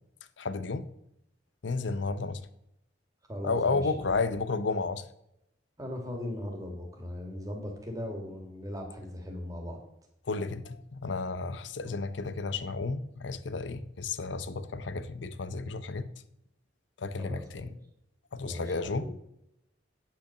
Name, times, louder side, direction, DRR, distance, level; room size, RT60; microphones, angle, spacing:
voice 1, 0.4-0.9 1.6-2.4 3.4-5.0 10.3-16.1 17.0-17.7 18.3-19.1, left 3 dB, 85° left, 0.7 m, -32 dB
voice 2, 3.3-4.2 5.8-9.8 11.8-12.0 17.2-17.7 18.4-19.1, left 1 dB, 20° right, 2.1 m, -39 dB
8.8 x 5.7 x 6.6 m
head